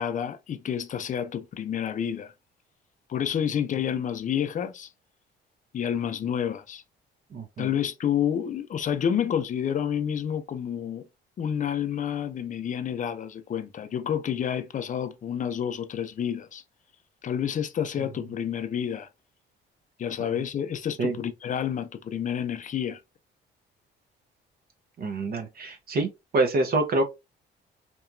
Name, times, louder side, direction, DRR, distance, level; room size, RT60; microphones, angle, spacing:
voice 1, 0.0-2.3 3.1-4.9 5.7-6.8 7.6-11.0 11.4-16.6 17.2-19.1 20.0-23.0, left 9 dB, 40° left, 0.4 m, -29 dB
voice 2, 7.3-7.7 21.0-21.2 25.0-27.1, right 2 dB, 50° right, 0.6 m, -26 dB
2.8 x 2.2 x 2.4 m
cardioid pair, 90°, 20 cm